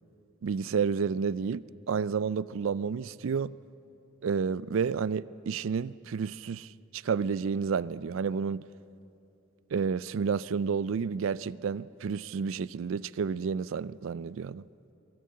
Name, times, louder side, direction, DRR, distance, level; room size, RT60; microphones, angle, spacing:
voice 1, 0.4-3.5 4.2-8.7 9.7-14.6, right 6 dB, 70° right, 0.4 m, -30 dB
23.0 x 15.5 x 7.6 m
head